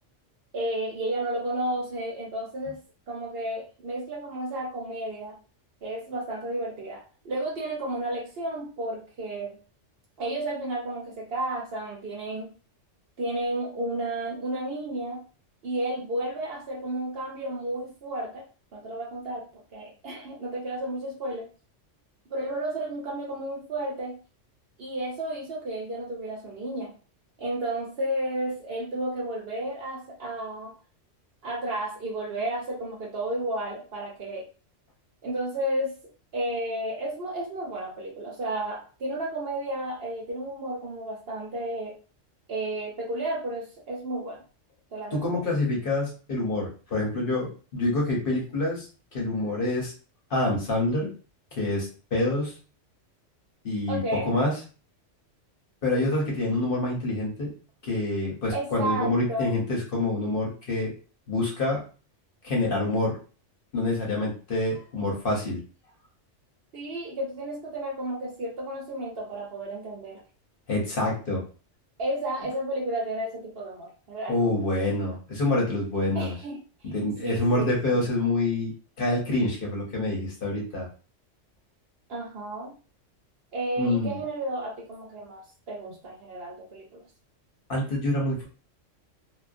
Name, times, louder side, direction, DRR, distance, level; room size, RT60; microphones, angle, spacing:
voice 1, 0.5-2.8 3.1-5.4 5.8-9.6 10.2-12.5 13.2-15.2 15.6-18.4 18.7-19.5 19.7-21.5 22.3-24.2 24.8-26.9 27.4-30.7 31.4-34.5 35.2-35.9 36.3-42.0 42.5-44.4 44.9-45.4 53.9-54.3 58.5-59.5 66.7-70.2 72.0-74.5 76.1-76.9 77.2-78.0 82.1-82.7 83.5-85.4 85.7-87.0, right 1 dB, 55° right, -1 dB, 0.8 m, -32 dB
voice 2, 45.1-49.9 50.3-51.1 51.6-52.5 53.6-54.0 54.3-54.5 55.8-57.5 57.8-60.9 61.3-61.8 62.4-63.2 63.7-65.6 70.7-71.4 74.3-76.3 76.8-78.7 79.0-80.9 83.8-84.2 87.7-88.5, left 2 dB, 50° left, -2 dB, 0.9 m, -26 dB
2.4 x 2.2 x 2.4 m, 0.36 s
omnidirectional pair, 1.3 m